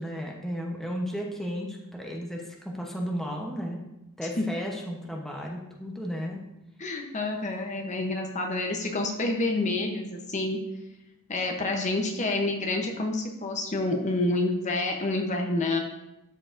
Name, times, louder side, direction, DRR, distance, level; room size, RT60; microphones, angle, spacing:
voice 1, 0.0-3.8 4.2-6.4, equal, ahead, -1 dB, 0.8 m, -34 dB
voice 2, 6.8-10.6 11.3-15.8, left 2 dB, 35° left, 2 dB, 0.7 m, -28 dB
12.5 x 4.6 x 2.5 m, 0.94 s
head